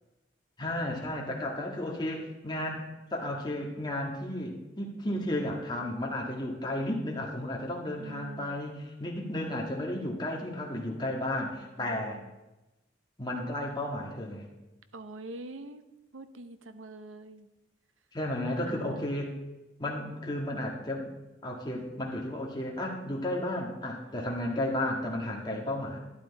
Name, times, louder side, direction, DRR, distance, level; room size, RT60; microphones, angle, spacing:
voice 1, 0.6-12.2 13.2-14.4 18.1-19.3 19.8-21.1 21.4-26.0, left 1 dB, 20° left, -1 dB, 1.6 m, -33 dB
voice 2, 8.0-8.6 11.8-12.4 14.9-15.8 16.1-17.5 18.5-19.1 25.4-25.8, right 2 dB, 85° right, 11 dB, 0.7 m, -45 dB
12.0 x 10.5 x 4.1 m, 1.0 s
head